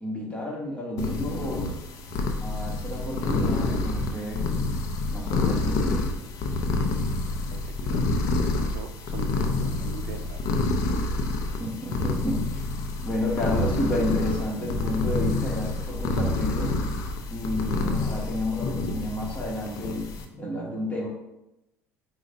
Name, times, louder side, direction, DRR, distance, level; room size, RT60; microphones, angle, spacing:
voice 1, 0.0-1.7 2.4-4.5 5.1-6.0 11.6-12.6 13.0-16.7 17.3-21.1, left 1 dB, 20° left, -2 dB, 1.4 m, -31 dB
sound 1, 1.0-20.2, left 2 dB, 65° left, 0.6 m, -28 dB
voice 2, 7.5-8.1 8.6-10.5, right 6 dB, 90° right, 9 dB, 0.4 m, -42 dB
5.0 x 2.3 x 3.9 m, 0.91 s
supercardioid pair, 100°, 6 cm